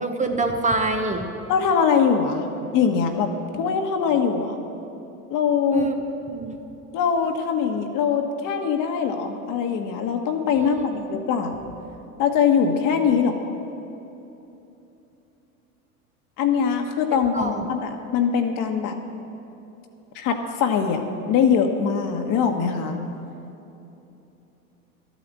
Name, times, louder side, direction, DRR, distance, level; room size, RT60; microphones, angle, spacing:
voice 1, 0.0-1.3 5.7-5.9 6.3-6.6 10.5-11.0 17.1-17.7, right 3 dB, 15° right, 4 dB, 1.0 m, -26 dB
voice 2, 1.5-2.5 2.7-4.6 5.3-5.9 6.9-11.5 12.2-13.6 16.4-19.0 20.1-21.0 21.3-23.0, left 6 dB, 45° left, 5 dB, 1.5 m, -22 dB
13.0 x 9.3 x 7.6 m, 2.9 s
hypercardioid pair, 85°, 45 cm